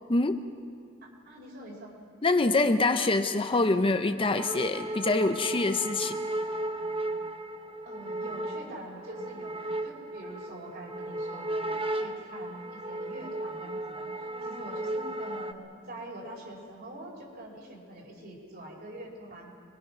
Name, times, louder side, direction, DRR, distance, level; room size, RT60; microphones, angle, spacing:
voice 1, 0.1-0.4 2.2-6.2, left 2 dB, 25° left, 8 dB, 0.6 m, -25 dB
voice 2, 1.0-2.0 7.8-19.5, right 1 dB, 50° right, -1 dB, 4.7 m, -44 dB
sound 1, 4.2-15.5, right 1 dB, 25° right, 0.8 m, -35 dB
25.5 x 21.5 x 5.9 m, 2.4 s
head